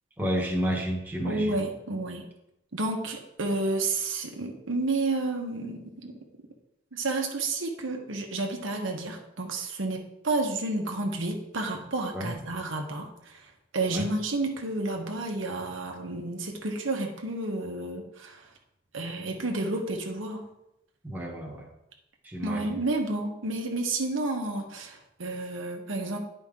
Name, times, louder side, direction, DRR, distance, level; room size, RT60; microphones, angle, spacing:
voice 1, 0.2-1.6 12.1-12.3 13.9-14.1 21.0-21.7 22.2-22.8, equal, 10° right, -2 dB, 1.2 m, -31 dB
voice 2, 1.2-2.2 2.7-6.1 6.9-13.5 13.7-18.4 18.9-20.4 22.4-26.2, right 2 dB, 90° right, 2 dB, 1.2 m, -31 dB
10.0 x 5.2 x 3.7 m, 0.86 s
head